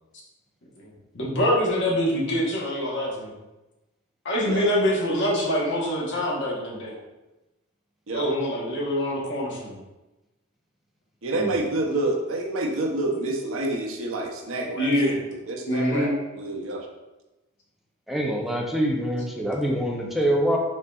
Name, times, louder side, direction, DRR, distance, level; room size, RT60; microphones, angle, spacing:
voice 1, 0.8-3.3 4.2-7.0 8.1-9.8 14.8-15.2 15.7-16.1, equal, 60° left, -4 dB, 1.2 m, -25 dB
voice 2, 11.2-14.9 15.3-16.8, right 2 dB, 70° right, 1 dB, 0.7 m, -28 dB
voice 3, 18.1-20.6, right 1 dB, ahead, -1 dB, 0.6 m, -25 dB
5.2 x 3.9 x 2.4 m, 1.0 s
head